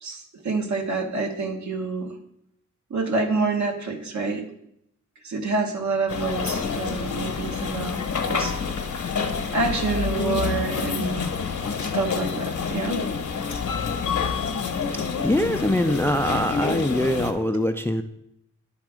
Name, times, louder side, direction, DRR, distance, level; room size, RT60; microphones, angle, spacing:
voice 1, 0.0-2.1 2.9-4.4 5.2-8.5 9.5-11.3 11.8-13.0, right 3 dB, 65° right, 3 dB, 1.2 m, -27 dB
sound 1, 6.1-17.3, left 5 dB, 70° left, 0.9 m, -28 dB
voice 2, 15.2-18.0, left 1 dB, 10° left, 8 dB, 0.3 m, -23 dB
9.9 x 3.6 x 4.9 m, 0.76 s
cardioid pair, 90°, 31 cm